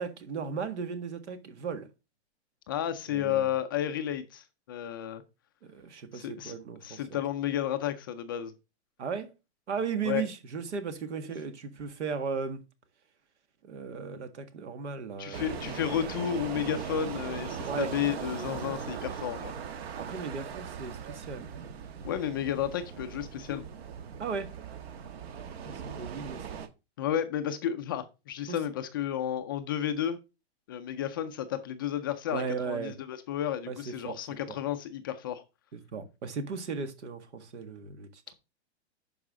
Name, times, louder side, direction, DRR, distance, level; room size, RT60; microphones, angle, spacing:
voice 1, 0.0-1.9 3.1-3.5 5.7-7.2 9.0-9.3 9.7-12.6 13.6-15.5 17.7-17.9 20.0-21.5 24.2-24.5 25.6-26.6 28.5-28.6 32.3-32.9 33.7-33.8 34.1-34.2 34.5-34.6 35.9-38.2, right 5 dB, 85° right, 1.9 m, -36 dB
voice 2, 2.7-5.2 6.1-8.5 10.0-10.3 15.2-19.5 22.0-23.6 27.0-30.2 30.7-35.4, left 10 dB, 20° left, 0.3 m, -32 dB
sound 1, 15.3-26.7, right 7 dB, 65° right, 1.3 m, -39 dB
11.0 x 4.8 x 3.6 m
hypercardioid pair, 155°, 34 cm